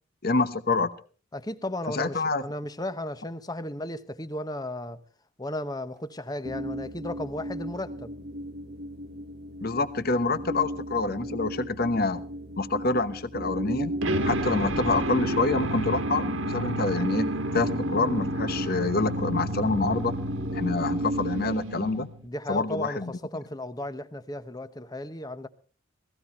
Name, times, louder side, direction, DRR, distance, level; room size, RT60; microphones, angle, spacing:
voice 1, 0.2-0.9 1.9-2.4 9.6-12.2 12.6-13.9 14.2-20.1 20.5-22.1 22.5-23.1, left 3 dB, 50° left, 1.0 m, -27 dB
voice 2, 1.3-5.0 5.4-8.1 22.2-25.5, left 1 dB, 20° left, 0.9 m, -35 dB
sound 1, 6.4-21.6, right 1 dB, 50° right, 1.1 m, -35 dB
sound 2, 14.0-22.3, right 1 dB, 85° right, 1.9 m, -31 dB
17.0 x 15.5 x 4.2 m
head